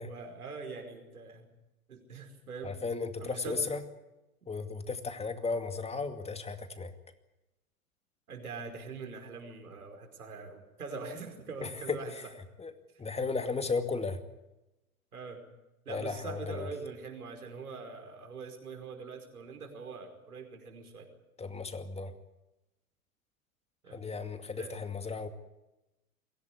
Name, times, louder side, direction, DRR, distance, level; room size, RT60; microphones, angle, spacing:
voice 1, 0.0-1.5 1.9-2.8 3.2-3.6 8.3-12.1 15.1-15.4 15.9-21.1 23.8-24.0 24.6-24.8, right 4 dB, 80° right, 4 dB, 5.1 m, -43 dB
voice 2, 2.6-3.8 4.5-6.9 11.6-12.3 12.6-12.7 13.0-14.2 15.9-16.7 21.4-22.1 23.9-25.3, left 4 dB, 15° left, 8 dB, 2.3 m, -35 dB
23.0 x 16.5 x 9.6 m, 0.98 s
figure-of-eight pair, 90°, 43 cm